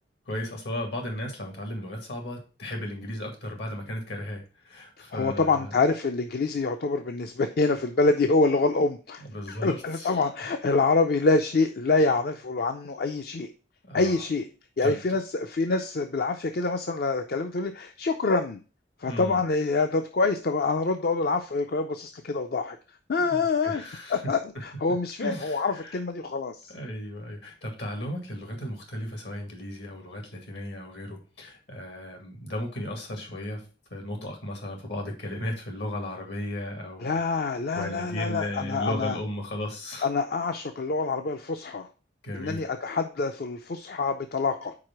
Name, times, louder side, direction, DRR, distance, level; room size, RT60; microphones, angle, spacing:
voice 1, 0.3-5.7 9.2-10.2 13.8-14.3 14.8-15.0 19.0-19.4 23.2-24.6 25.2-26.0 26.7-33.6 33.9-37.1 37.7-40.1 42.2-42.6, left 1 dB, 80° left, 2 dB, 2.1 m, -35 dB
voice 2, 5.1-13.5 13.9-14.5 14.8-18.6 19.0-22.8 23.1-23.8 24.1-26.7 37.0-39.2 40.0-41.9 42.3-44.7, left 3 dB, 60° left, 7 dB, 0.5 m, -26 dB
4.9 x 4.7 x 5.8 m, 0.35 s
head